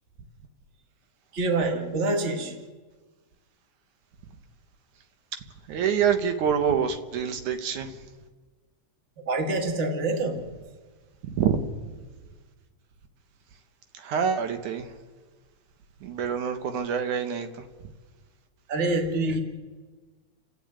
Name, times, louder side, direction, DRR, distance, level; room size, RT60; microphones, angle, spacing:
voice 1, 1.3-2.6 9.3-10.5 18.7-19.4, right 2 dB, 25° right, 4 dB, 1.7 m, -26 dB
voice 2, 5.7-7.9 11.2-11.6 14.0-14.9 16.0-17.5, right 7 dB, 80° right, 7 dB, 2.8 m, -26 dB
30.0 x 12.0 x 8.9 m, 1.4 s
omnidirectional pair, 3.4 m